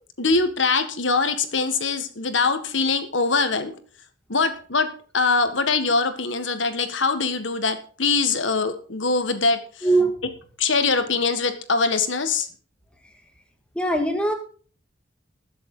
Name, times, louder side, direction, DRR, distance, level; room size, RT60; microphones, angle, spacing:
voice 1, 0.2-3.7 4.3-4.9 5.1-9.6 10.6-12.5, left 4 dB, 80° left, 8 dB, 1.7 m, -22 dB
voice 2, 9.8-10.2 13.8-14.3, right 2 dB, 5° left, 4 dB, 1.9 m, -21 dB
20.5 x 7.5 x 3.9 m, 0.42 s
head